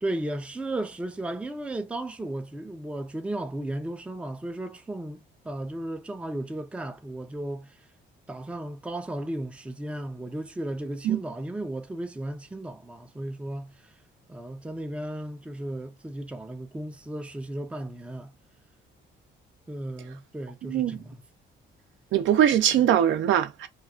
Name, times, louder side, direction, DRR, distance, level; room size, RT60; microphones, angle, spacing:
voice 1, 0.0-7.7 8.3-13.7 14.3-18.3 19.7-21.2, right 1 dB, 5° right, 0.4 m, -35 dB
voice 2, 20.6-21.0 22.1-23.7, right 10 dB, 75° right, 0.5 m, -22 dB
2.3 x 2.3 x 2.3 m
cardioid pair, 90°, 20 cm